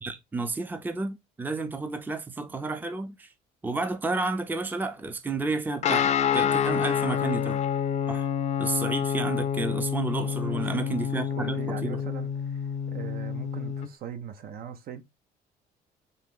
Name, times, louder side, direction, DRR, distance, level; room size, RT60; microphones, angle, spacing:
voice 1, 0.0-3.3 3.6-7.6 8.1-8.3 8.6-12.0, right 3 dB, 10° right, 0.5 m, -31 dB
Guitar, 5.8-13.9, left 8 dB, 45° left, 0.5 m, -28 dB
voice 2, 10.4-10.9 11.1-15.0, right 9 dB, 60° right, 0.7 m, -41 dB
4.0 x 2.9 x 3.7 m
cardioid pair, 110°, 17 cm